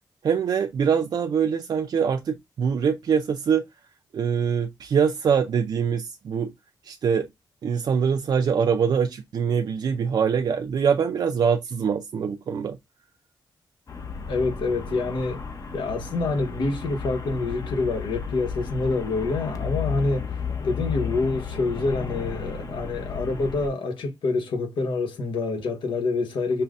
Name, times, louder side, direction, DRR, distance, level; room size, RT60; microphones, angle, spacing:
voice 1, 0.2-3.6 4.1-6.5 6.8-7.3 7.6-12.8, right 7 dB, 60° right, 0.4 m, -23 dB
Traffic noise roadway noise, 13.9-23.7, left 6 dB, 45° left, 0.8 m, -33 dB
voice 2, 14.3-15.4 15.7-26.6, left 3 dB, 85° left, 1.1 m, -27 dB
5.4 x 2.2 x 2.5 m
cardioid pair, 90°, 8 cm